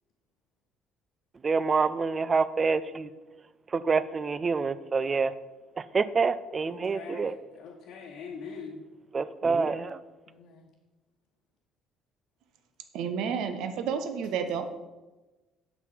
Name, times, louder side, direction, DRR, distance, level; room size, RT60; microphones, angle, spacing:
voice 1, 1.4-3.1 3.7-5.3 5.8-7.3 9.1-10.0, right 4 dB, 30° right, 15 dB, 0.5 m, -27 dB
voice 2, 6.7-8.8 9.4-9.7 10.3-10.7, left 5 dB, 55° left, -1 dB, 1.2 m, -44 dB
voice 3, 12.9-14.7, right 6 dB, 55° right, 8 dB, 0.9 m, -31 dB
8.2 x 7.1 x 5.8 m, 1.2 s
figure-of-eight pair, 50°, 0 cm